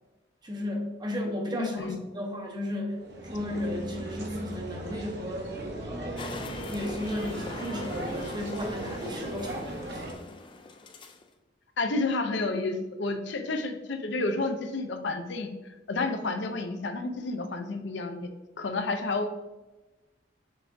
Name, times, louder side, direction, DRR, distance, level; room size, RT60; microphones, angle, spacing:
voice 1, 0.4-3.0 3.3-10.0, left 1 dB, 20° right, 1 dB, 0.7 m, -34 dB
voice 2, 1.5-2.0 11.8-15.5 15.9-18.3 18.6-19.3, left 3 dB, 65° left, 6 dB, 0.6 m, -30 dB
sound 1, 3.0-10.1, right 1 dB, 60° right, 0.9 m, -37 dB
sound 2, 6.2-11.2, left 3 dB, 25° left, 0.3 m, -42 dB
6.0 x 3.5 x 2.5 m, 1.1 s
head